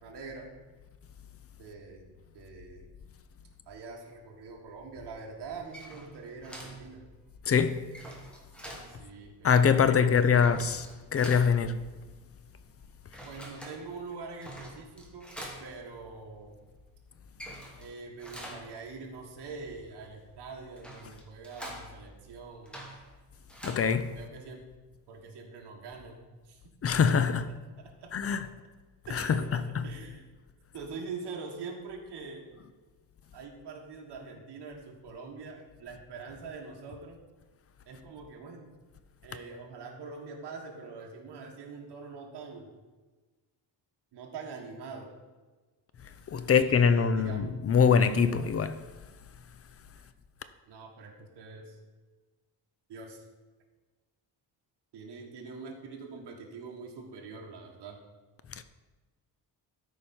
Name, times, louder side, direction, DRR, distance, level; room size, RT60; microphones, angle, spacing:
voice 1, 0.0-0.5 1.6-2.1 2.3-2.9 3.7-7.1 8.9-10.5 13.2-15.3 15.6-16.6 17.8-22.8 24.1-24.6 25.1-26.6 28.0-28.1 29.1-30.2 30.7-32.4 33.3-37.2 37.8-38.7 39.2-42.8 44.1-45.1 46.4-47.5 49.9-50.1 50.7-51.8 52.9-53.2 54.9-58.0, right 4 dB, 75° right, 1.6 m, -44 dB
sound 1, 5.5-24.5, right 1 dB, ahead, 1.4 m, -48 dB
voice 2, 7.4-7.9 9.4-10.9 11.1-11.8 23.6-24.2 26.8-27.5 28.1-28.5 29.1-29.6 46.3-48.9 58.5-58.6, left 6 dB, 35° left, 0.5 m, -24 dB
13.0 x 5.1 x 4.3 m
cardioid pair, 135°, 42 cm